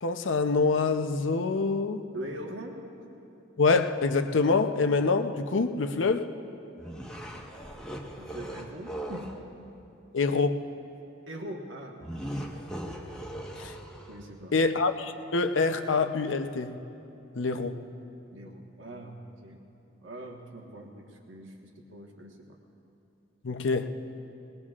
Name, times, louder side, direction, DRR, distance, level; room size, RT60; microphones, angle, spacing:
voice 1, 0.0-2.0 3.6-6.3 10.1-10.6 13.6-13.7 14.5-16.8 17.4-17.8 23.4-23.9, left 4 dB, 85° left, 8 dB, 0.7 m, -26 dB
voice 2, 2.1-2.8 8.2-9.3 11.3-12.6 14.1-14.5 18.3-19.6 20.0-22.6, right 1 dB, 85° right, 0 dB, 1.4 m, -42 dB
sound 1, 6.8-9.4 12.0-14.3, right 1 dB, 5° left, 1.2 m, -39 dB
21.5 x 20.0 x 2.5 m, 2.8 s
head